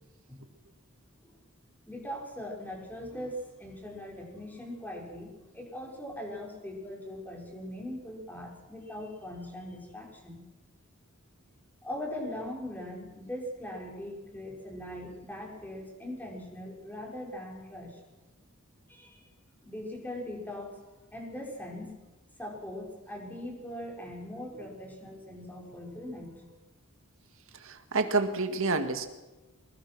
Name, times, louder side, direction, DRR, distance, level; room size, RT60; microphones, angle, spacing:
voice 1, 1.9-10.4 11.8-18.0 18.9-19.2 19.6-20.8 21.1-22.0 22.4-26.6, left 1 dB, 10° left, -1 dB, 5.8 m, -40 dB
voice 2, 27.5-29.1, right 3 dB, 65° right, 7 dB, 2.1 m, -28 dB
24.5 x 20.5 x 6.2 m, 1.1 s
head